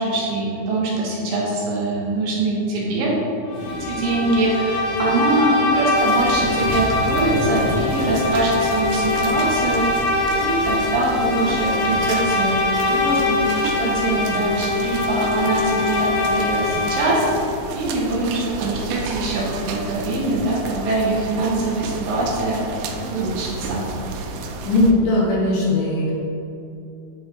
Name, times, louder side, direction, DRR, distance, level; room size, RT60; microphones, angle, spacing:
voice 1, 0.0-3.2 3.7-9.9 10.4-12.6 12.9-17.3 17.7-22.7 23.0-23.9, right 2 dB, 70° right, -4 dB, 2.4 m, -23 dB
Bowed string instrument, 3.5-17.4, left 2 dB, 90° left, 3.4 m, -23 dB
sound 1, 3.5-11.4, equal, 55° left, 1.6 m, -33 dB
sound 2, 6.0-24.9, right 4 dB, 90° right, 2.6 m, -32 dB
voice 2, 24.6-26.1, left 2 dB, 70° left, -6 dB, 3.2 m, -18 dB
8.9 x 3.6 x 4.4 m, 2.8 s
omnidirectional pair, 4.4 m